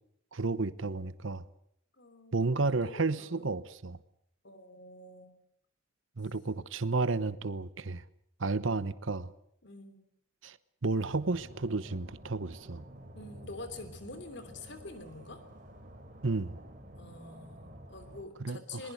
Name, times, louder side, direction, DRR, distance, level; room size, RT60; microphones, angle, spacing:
voice 1, 0.3-1.4 2.3-4.0 6.2-8.0 8.4-9.3 10.4-10.6 10.8-12.8 16.2-16.6 18.4-18.8, right 3 dB, 70° right, 16 dB, 0.9 m, -32 dB
voice 2, 2.0-3.6 4.4-5.4 9.6-10.1 13.1-15.4 16.9-18.9, left 2 dB, 55° left, 10 dB, 3.3 m, -47 dB
sound 1, 11.0-18.2, right 1 dB, 40° right, 3.6 m, -50 dB
21.0 x 20.5 x 8.2 m, 0.73 s
head